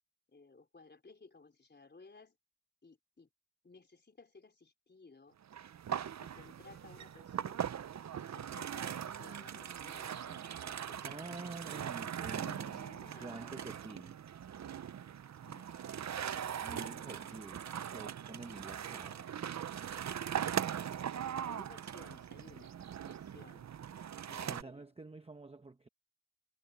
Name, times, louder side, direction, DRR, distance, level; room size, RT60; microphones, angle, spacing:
voice 1, 0.3-2.4 2.8-3.3 3.6-5.4 6.2-7.8 8.2-11.1 12.3-13.6 15.4-17.1 20.8-22.8 23.0-23.7 24.3-24.9, left 4 dB, 25° left, 4.4 m, -58 dB
sound 1, 5.5-24.6, right 9 dB, 45° right, 0.6 m, -40 dB
voice 2, 11.0-12.9 13.2-14.2 16.6-19.4 24.5-25.9, right 3 dB, 15° right, 0.9 m, -48 dB
wide cardioid pair, 160°, 40 cm